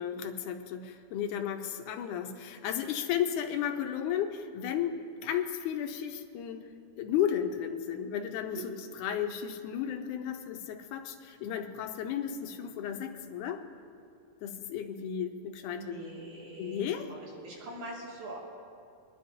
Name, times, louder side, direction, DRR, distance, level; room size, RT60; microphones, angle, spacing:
voice 1, 0.0-13.6 14.4-16.0 16.6-17.1, left 9 dB, 90° left, 5 dB, 2.2 m, -34 dB
voice 2, 15.6-18.4, right 2 dB, 70° right, -4 dB, 3.5 m, -43 dB
24.5 x 11.0 x 2.6 m, 2.4 s
omnidirectional pair, 3.5 m